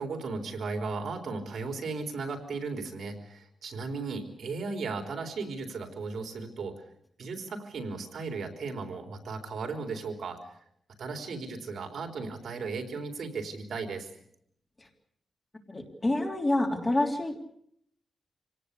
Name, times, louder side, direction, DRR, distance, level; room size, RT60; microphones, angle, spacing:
voice 1, 0.0-6.8 7.2-10.5 11.0-14.1, right 4 dB, 65° right, 5 dB, 3.9 m, -36 dB
voice 2, 15.7-17.4, left 1 dB, 20° left, 2 dB, 3.3 m, -27 dB
26.5 x 18.5 x 8.4 m, 0.70 s
wide cardioid pair, 160°, 0 cm